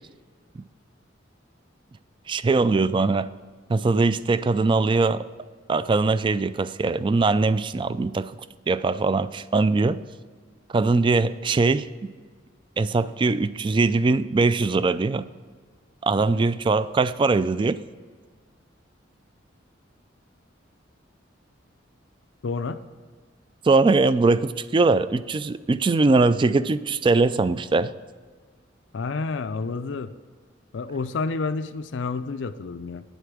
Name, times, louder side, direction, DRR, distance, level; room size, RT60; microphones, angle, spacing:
voice 1, 2.3-3.3 3.7-5.2 5.7-8.4 8.7-10.0 10.7-11.9 12.8-15.3 16.0-17.8 23.6-27.9, right 3 dB, 25° right, 16 dB, 0.3 m, -21 dB
voice 2, 22.4-22.8 28.9-30.1 30.7-33.0, left 4 dB, 70° left, 11 dB, 0.5 m, -29 dB
9.3 x 8.1 x 6.1 m, 1.5 s
head